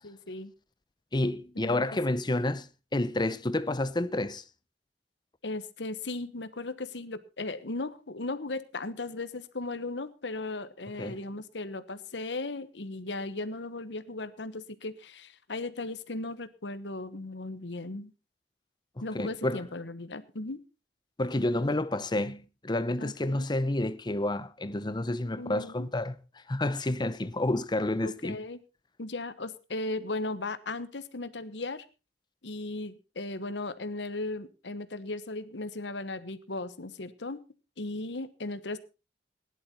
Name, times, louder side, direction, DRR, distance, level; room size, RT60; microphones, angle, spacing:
voice 1, 0.0-0.5 1.6-1.8 5.4-18.1 19.0-20.6 23.0-23.5 25.4-25.9 28.0-28.6 29.0-31.8 32.4-37.4 37.8-38.8, left 2 dB, 80° left, 1.2 m, -37 dB
voice 2, 1.1-4.4 11.0-11.2 19.1-19.6 21.2-26.1 26.5-28.4, left 1 dB, 25° left, 0.7 m, -29 dB
17.0 x 11.0 x 4.3 m
head